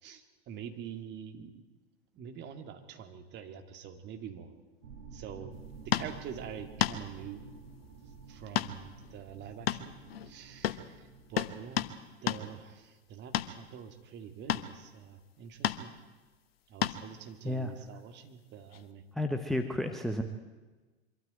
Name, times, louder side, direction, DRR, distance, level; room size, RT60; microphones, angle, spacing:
voice 1, 0.0-1.5 2.1-4.5 5.1-5.5 5.9-7.4 8.3-10.0 10.2-11.9 12.2-15.9 16.7-19.0, right 8 dB, 30° right, 6 dB, 2.2 m, -45 dB
sound 1, 4.8-12.0, right 5 dB, 50° right, 3.5 m, -51 dB
sound 2, 5.9-6.1 6.8-7.0 8.6-8.7 9.0-9.1 9.7-10.3 10.6-10.8 11.4-12.0 12.3-12.4 13.3-13.5 14.5-14.7 15.6-15.8 16.8-17.1 18.7-18.8, left 11 dB, 60° left, 1.1 m, -31 dB
voice 2, 19.1-20.2, left 1 dB, ahead, 6 dB, 1.0 m, -31 dB
24.0 x 13.0 x 9.1 m, 1.3 s
figure-of-eight pair, 95°, 33 cm